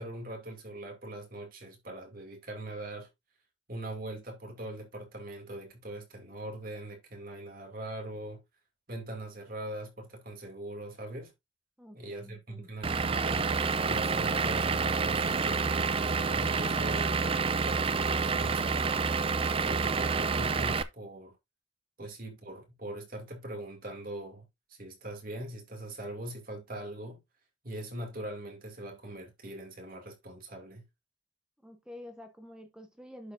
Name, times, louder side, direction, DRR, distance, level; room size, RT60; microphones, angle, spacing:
voice 1, 0.0-3.1 3.7-8.4 8.9-11.3 11.9-13.5 13.9-18.9 19.6-21.4 22.0-27.2 27.6-30.8, right 1 dB, 45° right, 2.4 m, -41 dB
voice 2, 11.8-12.7 31.6-33.3, left 1 dB, 5° right, 0.8 m, -48 dB
Vehicle / Engine, 12.8-20.8, right 4 dB, 30° right, 0.5 m, -28 dB
11.0 x 4.8 x 2.6 m
head